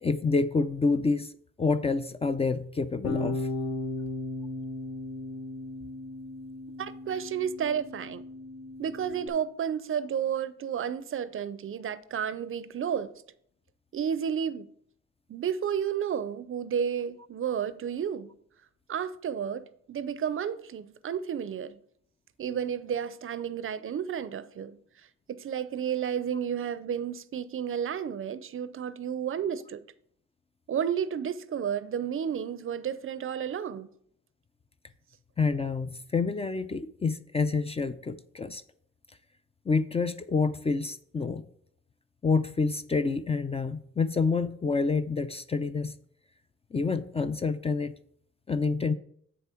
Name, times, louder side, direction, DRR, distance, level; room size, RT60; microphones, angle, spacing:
voice 1, 0.0-1.3 1.6-3.5 35.4-38.6 39.7-41.4 42.2-45.9 46.7-47.9 48.5-49.0, left 4 dB, 20° left, 0.4 m, -28 dB
Bass guitar, 3.0-9.3, left 2 dB, 60° left, 1.9 m, -36 dB
voice 2, 6.8-8.2 8.8-13.1 13.9-14.7 15.3-18.3 18.9-21.8 22.4-24.8 25.3-29.8 30.7-33.9, right 8 dB, 45° right, 0.5 m, -32 dB
7.5 x 7.0 x 4.4 m
cardioid pair, 90°, 30 cm